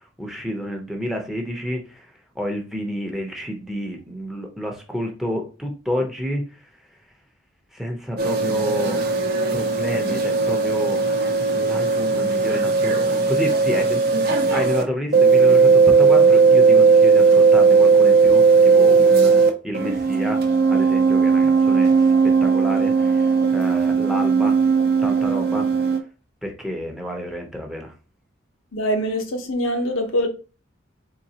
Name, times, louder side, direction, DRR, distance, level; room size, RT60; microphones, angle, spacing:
voice 1, 0.2-2.1 2.3-6.4 7.7-9.2 9.5-11.2 11.5-14.0 14.5-20.4 20.7-22.1 22.4-24.6 25.0-25.7 26.4-27.9, equal, ahead, 0.7 m, -29 dB
sound 1, 8.2-14.8 15.1-19.5 19.7-26.0, right 5 dB, 50° right, 0.6 m, -17 dB
voice 2, 28.7-30.3, equal, 80° left, 0.8 m, -23 dB
3.8 x 3.7 x 2.8 m
head